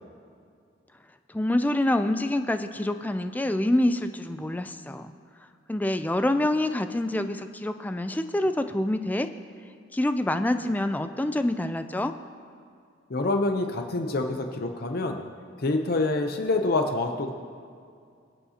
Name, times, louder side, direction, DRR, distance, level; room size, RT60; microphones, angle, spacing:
voice 1, 1.3-5.1 5.7-9.3 9.9-12.1, left 1 dB, 10° left, 9 dB, 0.3 m, -26 dB
voice 2, 13.1-15.2 15.6-17.3, left 2 dB, 50° left, 4 dB, 0.6 m, -26 dB
24.0 x 8.3 x 2.8 m, 2.3 s
head